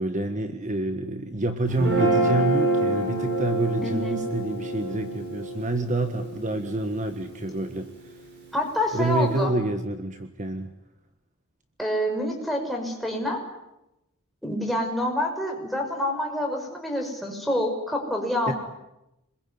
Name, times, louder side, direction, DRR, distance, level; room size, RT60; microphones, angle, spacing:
voice 1, 0.0-8.1 8.9-10.7 18.5-18.6, right 2 dB, 35° right, 7 dB, 1.6 m, -28 dB
Guitar, 1.7-8.0, right 1 dB, 50° right, 7.2 m, -27 dB
voice 2, 3.8-4.2 8.5-9.5 11.8-13.4 14.4-18.5, left 1 dB, ahead, 0 dB, 5.8 m, -27 dB
26.5 x 22.0 x 9.7 m, 0.93 s
head